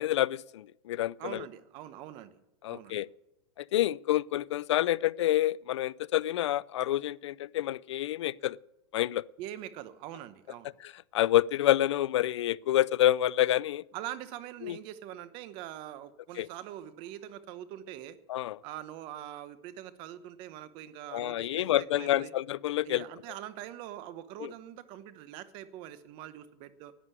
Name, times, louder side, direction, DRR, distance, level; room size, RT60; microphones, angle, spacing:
voice 1, 0.0-1.4 2.6-3.1 3.6-8.6 8.9-9.2 11.1-13.8 14.6-14.8 16.4-16.5 18.3-18.6 21.1-23.0 24.4-24.5, left 13 dB, 80° left, 0.4 m, -28 dB
voice 2, 1.2-2.4 2.7-3.0 9.4-10.7 13.9-18.2 18.6-22.3 22.8-26.9, right 12 dB, 35° right, 1.0 m, -43 dB
11.5 x 9.5 x 8.2 m
supercardioid pair, 155°, 15 cm